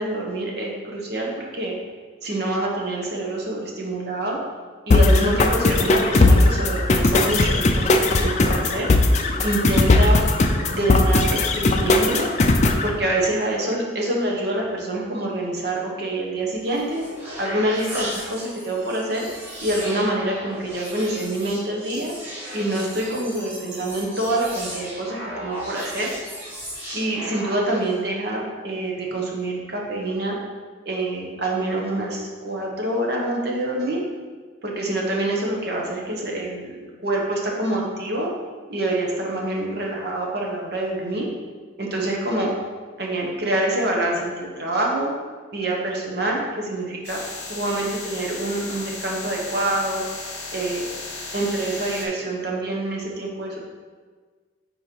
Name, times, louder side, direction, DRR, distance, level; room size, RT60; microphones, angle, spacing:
voice 1, 0.0-1.8 2.2-4.4 4.9-8.9 9.4-10.2 10.7-12.3 12.8-17.0 17.4-19.3 19.6-22.1 22.5-26.1 26.9-30.4 30.8-34.0 34.6-36.8 37.0-38.3 38.7-41.3 41.8-42.5 43.0-45.1 45.5-47.2 47.5-50.0 50.5-50.9 51.3-53.6, right 1 dB, 60° right, -1 dB, 1.1 m, -26 dB
sound 1, 4.9-12.9, left 2 dB, 40° left, 0.4 m, -18 dB
sound 2, 16.5-28.0, equal, 10° right, 1.6 m, -36 dB
sound 3, 47.0-52.1, left 3 dB, 60° left, 1.3 m, -35 dB
5.2 x 4.4 x 4.5 m, 1.5 s
head